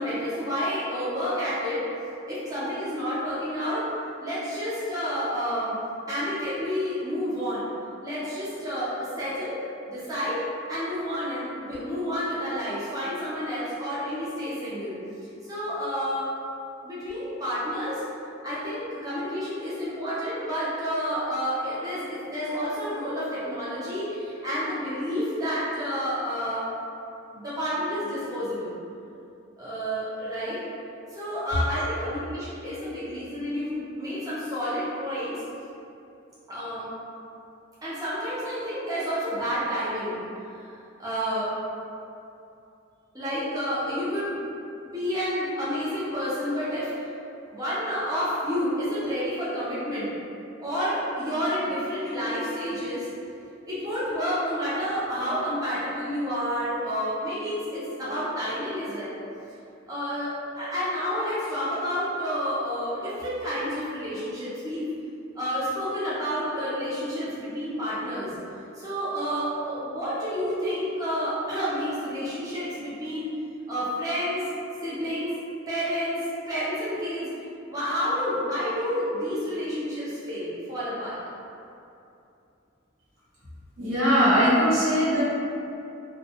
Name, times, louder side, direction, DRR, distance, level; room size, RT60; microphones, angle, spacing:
voice 1, 0.0-1.8 2.3-3.9 4.2-5.7 6.1-7.7 8.0-9.6 9.9-10.4 10.7-15.0 15.4-16.3 16.8-18.0 18.4-26.6 27.3-28.7 29.6-30.6 31.1-35.4 36.5-36.9 37.8-40.2 40.5-40.6 41.0-41.5 43.1-44.4 44.8-46.9 47.5-50.1 50.6-53.1 53.7-59.2 59.9-64.9 65.3-68.3 68.7-73.3 73.7-74.5 74.8-75.3 75.7-77.3 77.7-81.2, equal, 20° right, -11 dB, 0.5 m, -29 dB
voice 2, 83.8-85.2, equal, 85° right, -11 dB, 1.1 m, -20 dB
2.6 x 2.1 x 2.8 m, 2.7 s
head